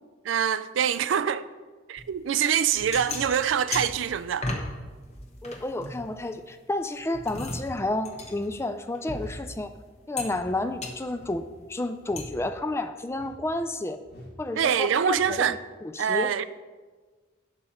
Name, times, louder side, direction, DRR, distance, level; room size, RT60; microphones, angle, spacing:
voice 1, 0.2-1.5 1.9-4.5 14.6-15.6 16.0-16.4, right 8 dB, 75° right, 0.4 m, -25 dB
sound 1, 2.0-2.1 2.6-4.7 5.0-6.6 7.0-9.7 10.2-10.5 10.8-11.0 12.2-12.3, left 2 dB, 35° left, 1.1 m, -36 dB
voice 2, 5.4-9.7 10.1-14.0 14.4-16.3, left 2 dB, 15° left, 0.3 m, -31 dB
sound 2, 7.2-7.5 8.1-8.4 9.1-9.4 10.2-10.5 11.1-11.5 12.0-12.3 13.1-13.4 14.0-14.4 15.1-15.4, equal, 55° left, 1.5 m, -47 dB
9.0 x 6.4 x 4.3 m
head